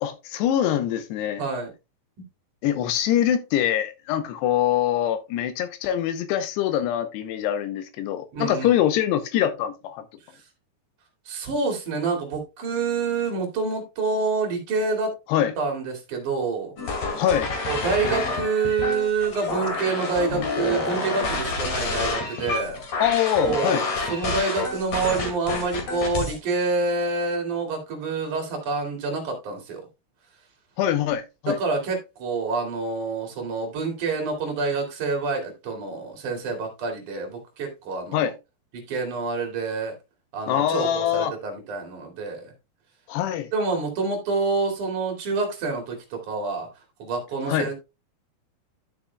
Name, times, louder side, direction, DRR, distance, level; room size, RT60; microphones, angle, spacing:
voice 1, 0.0-1.4 2.6-10.0 15.3-15.5 17.2-17.5 23.0-23.8 30.8-31.6 38.1-38.3 40.5-41.3 43.1-43.5 47.5-47.7, left 11 dB, 80° left, 2.7 m, -24 dB
voice 2, 1.4-1.7 8.3-8.8 10.3-10.4 11.3-15.2 15.6-16.7 17.7-22.8 23.4-23.8 24.1-29.8 31.5-38.3 38.7-40.0 40.3-42.5 43.5-46.7 47.0-47.7, right 4 dB, 50° right, 3.3 m, -27 dB
sound 1, 16.8-26.4, left 3 dB, 45° left, 2.8 m, -28 dB
13.0 x 6.4 x 2.3 m
omnidirectional pair, 5.1 m